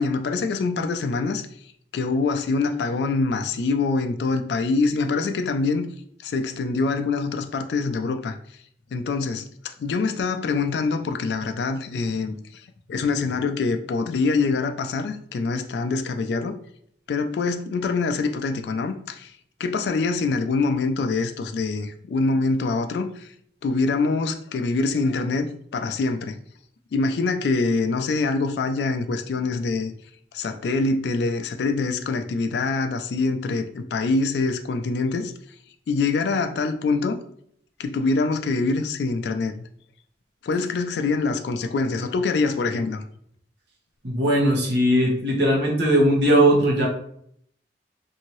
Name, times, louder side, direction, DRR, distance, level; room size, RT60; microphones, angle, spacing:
voice 1, 0.0-1.5 1.9-5.9 6.2-8.4 8.9-12.6 12.9-16.6 17.1-19.3 19.6-23.3 23.6-25.5 25.7-26.3 26.9-29.9 30.3-35.3 35.9-37.2 37.8-39.6 40.4-43.0, left 3 dB, 70° left, 0.3 m, -24 dB
voice 2, 44.0-46.9, right 1 dB, 75° right, 1.0 m, -19 dB
2.7 x 2.6 x 3.0 m
head